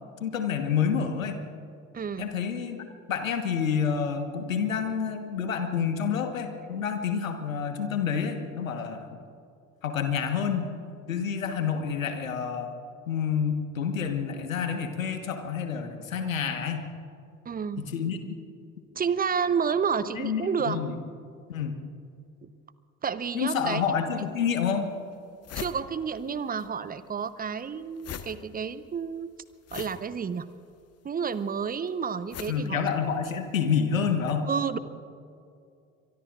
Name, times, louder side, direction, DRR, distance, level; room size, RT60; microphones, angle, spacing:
voice 1, 0.2-1.4 2.2-9.0 9.8-10.7 11.1-12.7 13.1-16.9 17.8-18.2 20.1-21.0 21.5-21.8 23.3-24.9 32.5-34.5, left 7 dB, 80° left, 7 dB, 1.4 m, -28 dB
voice 2, 1.9-2.3 17.4-17.9 19.0-20.8 23.0-23.8 25.5-29.3 29.7-30.5 31.0-32.8 34.5-34.8, right 6 dB, 20° right, 14 dB, 0.8 m, -30 dB
sound 1, 24.2-24.3 24.8-24.9 25.1-26.7 26.9-33.5, left 8 dB, 40° left, 1.2 m, -42 dB
24.5 x 23.0 x 2.5 m, 2.4 s
figure-of-eight pair, 55°, 40 cm